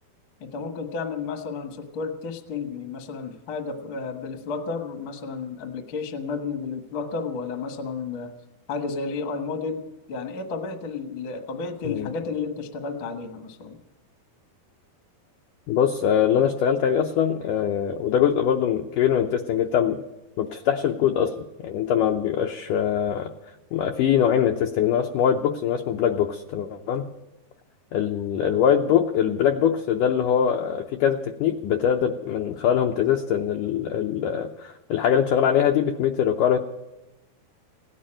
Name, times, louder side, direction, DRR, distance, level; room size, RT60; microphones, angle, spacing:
voice 1, 0.4-8.3 8.7-9.8 10.1-13.8, left 4 dB, 65° left, 7 dB, 1.2 m, -32 dB
voice 2, 15.7-20.0 20.4-23.3 23.7-27.1 27.9-36.6, left 9 dB, 80° left, 5 dB, 1.8 m, -23 dB
16.5 x 9.3 x 8.8 m, 1.0 s
omnidirectional pair, 4.5 m